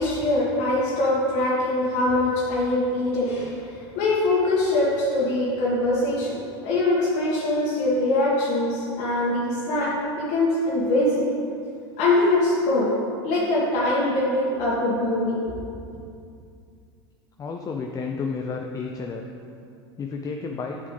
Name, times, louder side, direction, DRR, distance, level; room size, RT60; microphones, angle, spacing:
voice 1, 0.0-11.3 12.0-12.9 13.2-15.5, left 2 dB, 55° left, -7 dB, 1.6 m, -23 dB
voice 2, 17.4-19.2 20.0-20.8, left 4 dB, 25° left, 2 dB, 0.6 m, -31 dB
8.0 x 7.5 x 3.3 m, 2.4 s
hypercardioid pair, 85°, 14 cm